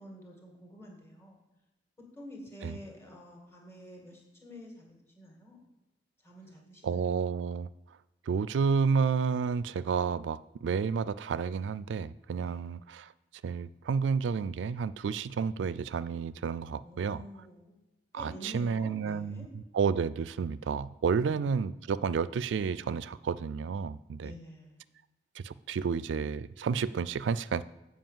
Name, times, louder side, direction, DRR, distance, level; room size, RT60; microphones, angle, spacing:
voice 1, 0.0-1.4 2.1-5.6 6.2-7.2 12.4-12.6 16.8-17.8 18.1-19.5 21.1-21.6 24.2-25.0, equal, 15° left, -1 dB, 2.1 m, -49 dB
voice 2, 6.8-7.7 8.3-13.1 13.4-17.2 18.1-24.3 25.4-27.6, right 5 dB, 85° right, 18 dB, 0.3 m, -31 dB
7.8 x 5.1 x 7.4 m, 1.0 s
head